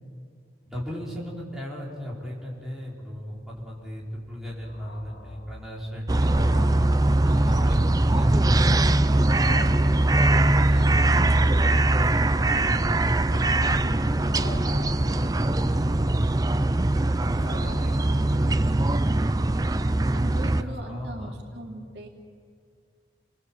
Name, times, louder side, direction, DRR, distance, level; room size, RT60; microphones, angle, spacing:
voice 1, 0.7-6.6 7.3-9.8 10.3-16.2 17.1-18.9 20.6-21.3, equal, 5° right, -5 dB, 5.3 m, -36 dB
sound 1, 2.6-2.7 2.9-7.7 8.0-8.1 8.7-21.3, left 1 dB, 80° left, 2.5 m, -46 dB
sound 2, 6.1-20.6, right 2 dB, 20° right, 0.6 m, -21 dB
voice 2, 13.8-14.1 20.1-22.1, right 1 dB, 90° right, 2 dB, 3.0 m, -40 dB
29.0 x 21.0 x 8.0 m, 2.3 s
head